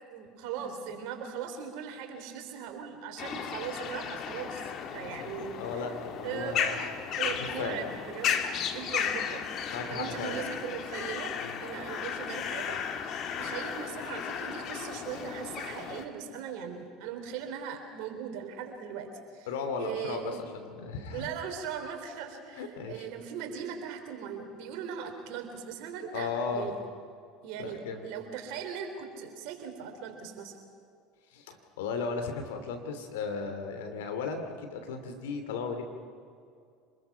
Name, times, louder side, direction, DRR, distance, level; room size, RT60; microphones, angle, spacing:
voice 1, 0.1-5.6 6.2-6.8 7.2-8.4 8.7-9.4 9.9-11.4 11.6-12.8 13.4-19.1 19.3-19.5 19.8-20.4 21.1-26.8 27.4-30.5, right 7 dB, 65° right, 5 dB, 3.4 m, -39 dB
sound 1, 3.2-16.1, left 8 dB, 50° left, 1.8 m, -35 dB
voice 2, 5.0-6.7 7.3-7.8 9.7-10.4 11.4-11.6 19.5-21.3 22.6-23.1 26.1-26.7 27.6-28.1 31.3-35.8, left 5 dB, 75° left, 6 dB, 2.7 m, -36 dB
26.0 x 21.0 x 5.7 m, 2.3 s
hypercardioid pair, 75°, 0 cm